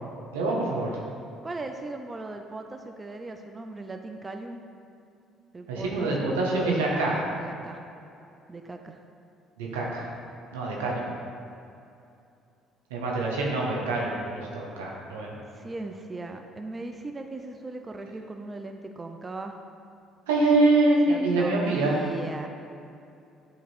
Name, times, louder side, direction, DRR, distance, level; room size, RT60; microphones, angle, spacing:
voice 1, 0.3-0.9 5.7-7.2 9.6-10.1 10.5-11.0 12.9-15.4 20.3-22.0, right 2 dB, 90° right, -3 dB, 1.0 m, -25 dB
voice 2, 1.4-4.6 5.5-6.4 7.4-7.8 8.5-9.0 15.5-19.6 21.1-22.5, right 2 dB, 25° right, 5 dB, 0.5 m, -38 dB
8.3 x 3.0 x 4.3 m, 2.6 s
hypercardioid pair, 60°, 0 cm